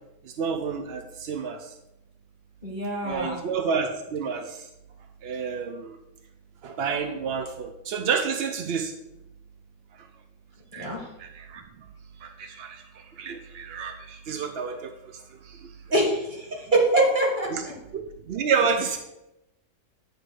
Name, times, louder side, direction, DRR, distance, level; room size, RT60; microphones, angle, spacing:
voice 1, 0.2-1.7 3.0-4.7 5.2-6.0 6.6-8.9 10.7-11.6 12.2-14.9 15.4-15.7 17.5-17.6 17.9-19.0, right 6 dB, 70° right, 6 dB, 0.6 m, -29 dB
voice 2, 2.6-3.4 10.8-11.0 15.9-16.5 16.7-17.5, right 2 dB, 30° right, -1 dB, 1.9 m, -23 dB
9.2 x 3.1 x 6.2 m, 0.91 s
omnidirectional pair, 1.6 m